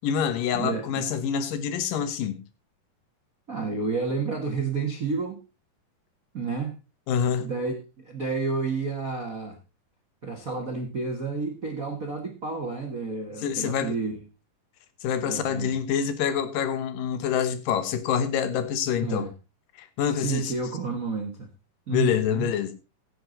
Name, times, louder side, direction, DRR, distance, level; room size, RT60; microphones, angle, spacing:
voice 1, 0.0-2.4 7.1-7.5 13.4-14.0 15.0-19.3 19.8-20.5 21.9-22.7, left 8 dB, 80° left, 2.9 m, -26 dB
voice 2, 0.5-1.1 3.5-5.4 6.3-6.8 7.4-9.6 10.2-14.2 15.2-15.7 19.0-19.3 20.1-21.5 21.9-22.5, right 4 dB, 50° right, 1.0 m, -30 dB
16.0 x 8.1 x 3.9 m
omnidirectional pair, 4.0 m